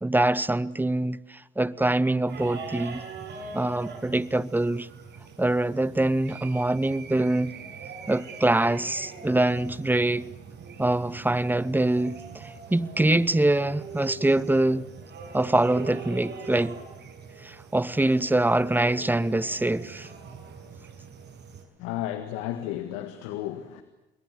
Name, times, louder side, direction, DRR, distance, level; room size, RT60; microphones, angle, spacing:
voice 1, 0.0-3.0 3.5-4.9 5.4-7.5 8.1-10.3 10.8-14.9 15.3-16.8 17.4-20.1, right 2 dB, 10° right, 1.0 m, -24 dB
sound 1, 2.3-21.6, right 4 dB, 55° right, 6.7 m, -42 dB
voice 2, 21.8-23.8, left 12 dB, 90° left, 1.8 m, -33 dB
28.5 x 21.5 x 8.2 m
supercardioid pair, 75°, 21 cm